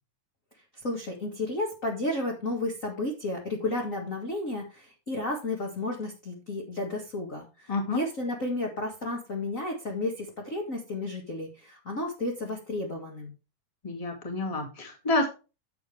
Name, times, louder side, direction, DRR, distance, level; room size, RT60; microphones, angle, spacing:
voice 1, 0.8-13.3, left 2 dB, 30° left, -1 dB, 1.7 m, -32 dB
voice 2, 7.7-8.0 13.8-15.3, left 2 dB, 15° left, 3 dB, 1.8 m, -29 dB
10.5 x 7.8 x 3.4 m, 0.31 s
omnidirectional pair, 3.8 m